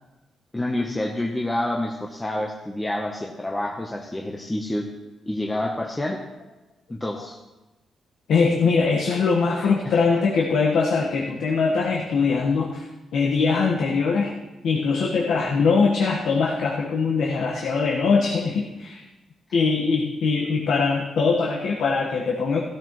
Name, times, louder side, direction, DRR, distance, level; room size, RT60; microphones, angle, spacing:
voice 1, 0.5-4.9 5.2-6.2 6.9-7.4 9.6-10.0, left 1 dB, 10° left, 1 dB, 1.0 m, -28 dB
voice 2, 8.3-12.8 13.1-14.3 14.6-19.0 19.5-22.6, left 4 dB, 75° left, -1 dB, 1.4 m, -22 dB
16.0 x 13.5 x 3.2 m, 1.1 s
cardioid pair, 135°, 0 cm